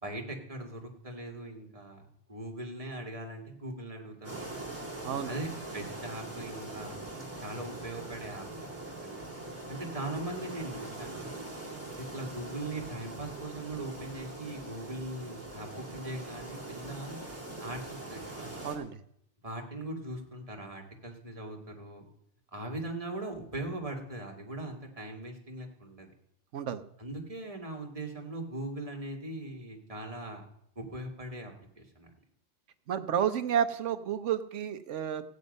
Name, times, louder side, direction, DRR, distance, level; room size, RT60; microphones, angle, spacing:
voice 1, 0.0-2.0 2.3-4.5 5.2-7.0 7.4-8.7 9.0-9.1 9.7-11.5 12.0-17.2 17.6-18.5 19.4-22.0 22.5-26.1 27.0-30.4 30.8-32.1, right 1 dB, 30° right, 2 dB, 2.1 m, -40 dB
sound 1, 4.2-18.8, right 2 dB, 10° right, 2.3 m, -42 dB
voice 2, 5.0-5.3 18.6-19.0 26.5-26.8 32.9-35.2, right 9 dB, 80° right, 11 dB, 1.2 m, -31 dB
15.0 x 9.3 x 5.3 m, 0.74 s
omnidirectional pair, 1.2 m